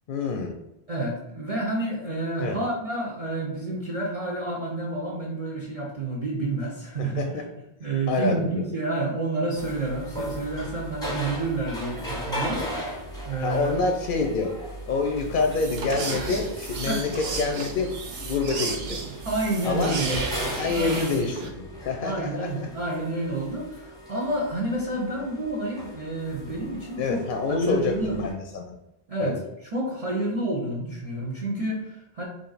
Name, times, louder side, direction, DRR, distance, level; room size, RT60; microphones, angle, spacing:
voice 1, 0.1-0.6 2.4-2.6 7.0-7.4 8.1-8.7 13.4-14.5 14.9-19.0 19.6-20.0 20.6-22.7 27.0-28.8 29.2-29.4, left 4 dB, 60° left, 3 dB, 0.6 m, -27 dB
voice 2, 0.9-7.4 7.8-12.9 13.3-13.8 16.8-17.0 19.2-20.3 20.7-21.0 22.0-27.2 27.5-28.2 29.1-32.2, right 2 dB, 40° right, -3 dB, 0.6 m, -29 dB
sound 1, 9.5-28.3, equal, 5° left, 0.8 m, -37 dB
sound 2, 15.2-21.5, right 4 dB, 80° right, 0.9 m, -33 dB
3.3 x 2.5 x 3.9 m, 0.89 s
omnidirectional pair, 1.0 m